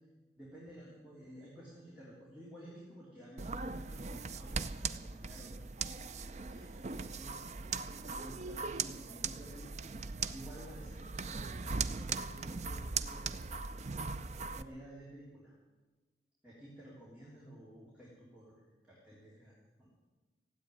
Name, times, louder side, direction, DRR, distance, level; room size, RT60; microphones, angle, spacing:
voice 1, 0.4-5.7 6.2-7.5 8.0-9.9 10.2-13.4 14.5-15.6 16.4-19.9, right 1 dB, 5° right, -7 dB, 3.4 m, -53 dB
sound 1, 3.4-14.6, right 4 dB, 40° right, 0.5 m, -39 dB
16.0 x 8.3 x 9.9 m, 1.3 s
head